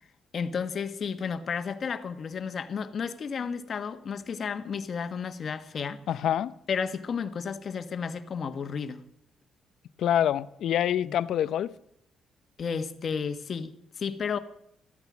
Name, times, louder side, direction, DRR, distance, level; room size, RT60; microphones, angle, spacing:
voice 1, 0.3-6.0 6.7-9.0 11.0-11.1 12.6-14.4, left 6 dB, 50° left, 1.3 m, -32 dB
voice 2, 6.1-6.5 10.0-11.7, left 10 dB, 75° left, 0.6 m, -26 dB
15.0 x 13.5 x 6.2 m
cardioid pair, 90°, 0 cm